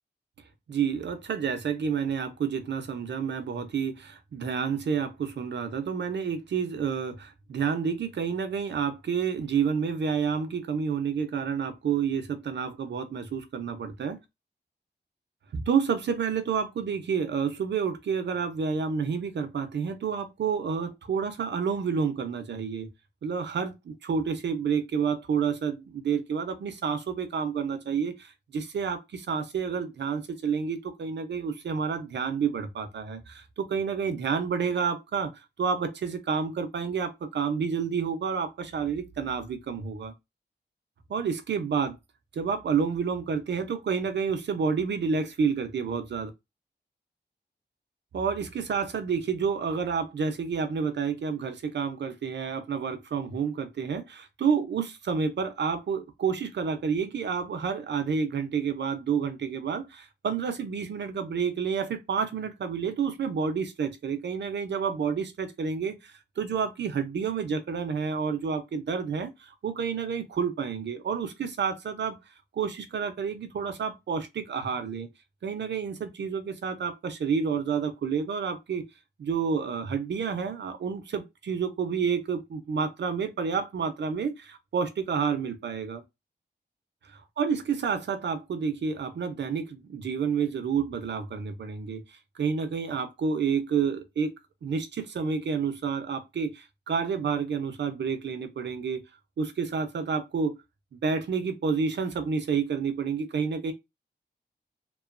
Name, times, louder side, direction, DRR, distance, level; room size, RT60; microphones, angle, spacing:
voice 1, 0.7-14.2 15.7-22.9 23.2-40.1 41.1-42.0 42.3-46.3 48.1-72.2 72.5-75.1 75.4-78.8 79.2-86.0 87.1-94.3 94.6-99.0 99.4-100.5 100.9-103.7, right 6 dB, 75° right, 0.6 m, -29 dB
3.0 x 2.1 x 2.4 m
wide cardioid pair, 90°, 18 cm